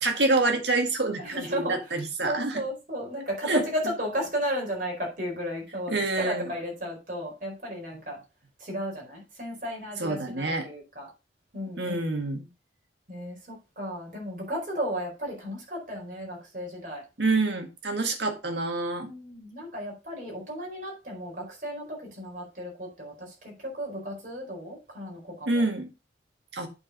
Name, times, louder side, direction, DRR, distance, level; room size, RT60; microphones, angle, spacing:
voice 1, 0.0-2.6 3.5-3.6 5.9-6.5 10.0-10.7 11.8-12.5 17.2-19.1 25.5-25.9 26.5-26.7, right 2 dB, 70° right, 5 dB, 1.8 m, -27 dB
voice 2, 1.2-8.2 8.6-11.1 11.5-12.0 13.1-17.0 19.0-25.6, equal, 45° right, -1 dB, 4.5 m, -34 dB
8.7 x 4.9 x 5.4 m, 0.28 s
head